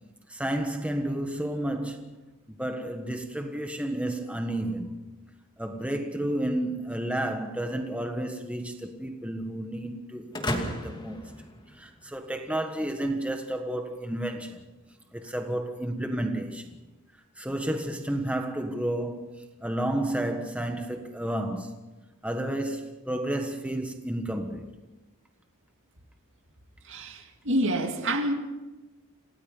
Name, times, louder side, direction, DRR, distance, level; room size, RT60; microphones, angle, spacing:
voice 1, 0.3-2.1 2.5-5.1 5.6-14.6 15.1-16.8 17.4-21.8 22.2-24.7, right 1 dB, 5° right, 1.4 m, -31 dB
sound 1, 10.3-12.3, left 1 dB, 20° left, 2.5 m, -34 dB
voice 2, 26.8-28.3, right 1 dB, 60° right, 2.4 m, -27 dB
28.5 x 18.0 x 5.5 m
head